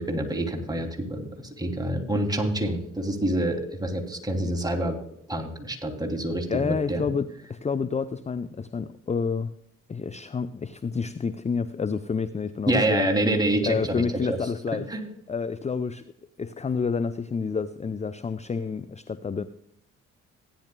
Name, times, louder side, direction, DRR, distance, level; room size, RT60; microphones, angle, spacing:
voice 1, 0.0-5.0 5.3-7.1 12.7-14.4 14.9-15.0, right 1 dB, 10° right, 1 dB, 2.9 m, -27 dB
voice 2, 6.5-9.5 9.9-13.1 13.6-14.9 15.3-16.0 16.4-19.4, left 5 dB, 20° left, 13 dB, 0.6 m, -29 dB
16.5 x 10.0 x 2.3 m, 0.75 s
hypercardioid pair, 45°, 33 cm